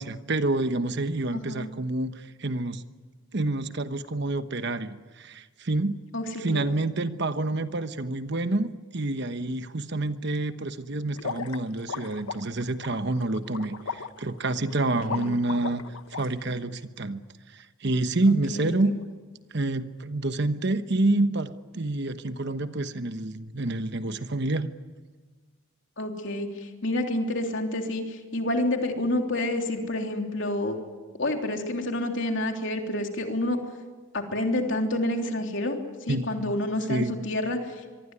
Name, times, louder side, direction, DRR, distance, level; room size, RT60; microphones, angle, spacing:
voice 1, 0.0-2.8 3.3-6.0 6.4-15.8 16.1-17.2 17.5-18.9 19.5-24.7 36.1-36.5 36.9-37.1, right 2 dB, 55° right, 10 dB, 1.1 m, -28 dB
voice 2, 1.3-1.7 6.1-6.7 15.1-15.4 18.3-19.0 26.0-30.8 31.2-33.6 34.1-35.8 36.1-37.6, left 1 dB, 60° left, 3 dB, 3.4 m, -29 dB
sound 1, 11.2-16.2, left 5 dB, 90° left, 1.1 m, -36 dB
24.5 x 24.0 x 9.8 m, 1.4 s
head